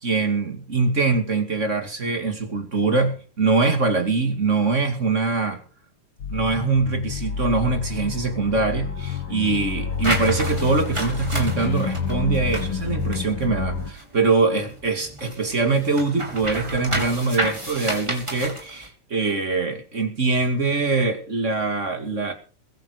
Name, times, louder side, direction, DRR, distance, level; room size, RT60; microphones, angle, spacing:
voice 1, 0.0-5.6 6.3-22.3, right 3 dB, 25° right, 6 dB, 2.3 m, -23 dB
sound 1, 6.2-13.9, left 6 dB, 45° left, 2.9 m, -28 dB
sound 2, 10.0-14.2 14.6-18.9, right 1 dB, 10° right, 2.7 m, -30 dB
22.0 x 9.3 x 5.0 m, 0.38 s
omnidirectional pair, 3.5 m